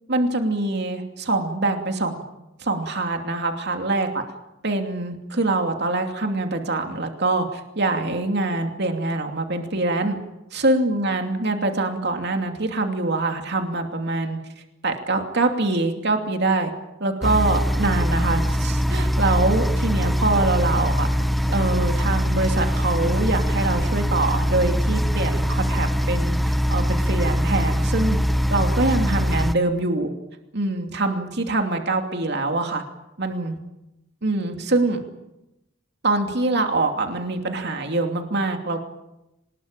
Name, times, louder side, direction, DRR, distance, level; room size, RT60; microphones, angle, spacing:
voice 1, 0.1-2.2 2.6-4.2 4.6-10.2 10.5-14.4 14.8-16.7 17.0-21.1 21.5-28.2 28.5-30.1 30.5-32.8 33.2-33.6 34.2-35.0 36.0-38.9, right 2 dB, 55° right, 4 dB, 2.8 m, -24 dB
sound 1, 17.2-29.6, equal, ahead, 0.8 m, -22 dB
25.0 x 20.5 x 9.0 m, 0.94 s
head